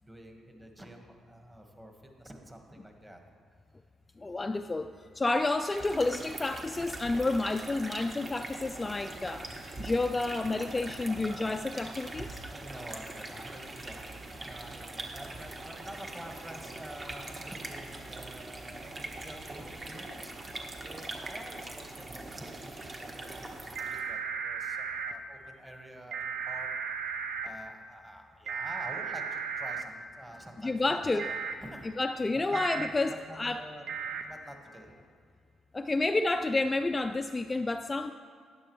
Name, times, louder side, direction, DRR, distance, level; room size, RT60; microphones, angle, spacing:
voice 1, 0.0-3.2 12.4-26.7 27.4-31.2 31.6-32.0 32.3-35.1, right 1 dB, 15° right, 3 dB, 1.4 m, -48 dB
voice 2, 4.2-9.5 9.8-12.4 30.6-31.3 32.0-33.6 35.7-38.1, left 2 dB, 20° left, 7 dB, 0.3 m, -30 dB
sound 1, 5.5-24.1, right 2 dB, 35° right, 1.2 m, -42 dB
sound 2, 23.8-25.1 26.1-27.5 28.5-29.8 31.2-31.5 32.5-32.9 33.9-34.2, right 6 dB, 80° right, 0.6 m, -35 dB
12.0 x 9.6 x 3.1 m, 2.2 s
cardioid pair, 90°, 0 cm